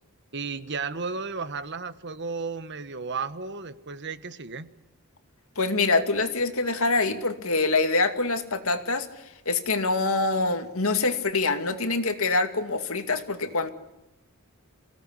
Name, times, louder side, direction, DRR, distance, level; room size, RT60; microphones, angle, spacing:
voice 1, 0.3-4.7, right 4 dB, 55° right, 12 dB, 1.4 m, -33 dB
voice 2, 5.6-9.1 9.5-13.7, left 3 dB, 70° left, 8 dB, 2.4 m, -25 dB
27.0 x 17.5 x 9.9 m, 0.98 s
head